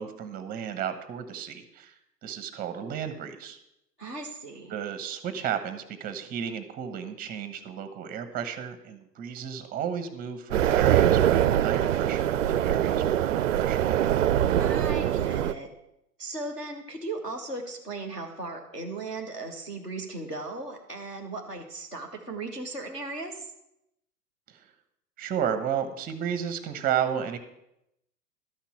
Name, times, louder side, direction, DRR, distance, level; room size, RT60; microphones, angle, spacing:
voice 1, 0.0-1.9 2.2-3.6 4.7-13.8 24.5-24.7 25.2-27.4, right 8 dB, 20° right, 10 dB, 1.0 m, -33 dB
voice 2, 4.0-4.7 14.6-15.7 16.2-23.5, right 2 dB, 10° left, -3 dB, 0.4 m, -37 dB
sound 1, 10.5-15.5, right 11 dB, 50° right, 0.5 m, -23 dB
12.5 x 5.9 x 7.1 m, 0.83 s
figure-of-eight pair, 105°, 48 cm